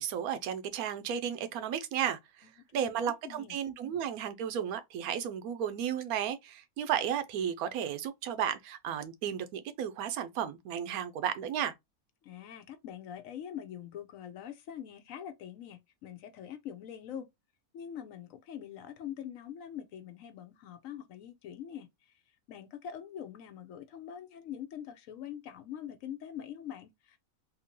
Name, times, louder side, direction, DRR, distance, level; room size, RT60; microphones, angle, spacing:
voice 1, 0.0-2.5 2.7-11.7, right 9 dB, 80° right, 1.0 m, -33 dB
voice 2, 2.7-3.6 12.2-17.3 17.7-22.2 22.5-27.2, left 9 dB, 70° left, 0.9 m, -44 dB
3.6 x 2.7 x 2.9 m
omnidirectional pair, 1.6 m